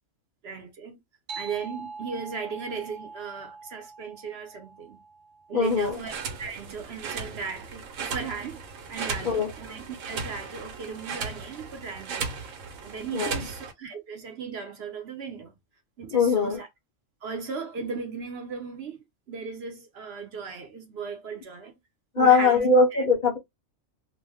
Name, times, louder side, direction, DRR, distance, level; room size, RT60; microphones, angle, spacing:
voice 1, 0.4-1.0 1.3-5.0 5.5-6.1 6.4-8.6 8.9-12.4 12.8-15.5 16.0-16.7 17.2-21.7 22.2-23.0, right 5 dB, 60° right, 0.9 m, -37 dB
sound 1, 1.3-6.3, right 4 dB, 40° right, 0.6 m, -43 dB
voice 2, 5.5-6.0 9.2-9.5 13.1-13.5 16.1-16.6 22.1-23.4, left 4 dB, 50° left, 0.7 m, -21 dB
sound 2, 5.6-13.7, right 5 dB, 85° right, 1.1 m, -36 dB
2.5 x 2.1 x 3.4 m
omnidirectional pair, 1.3 m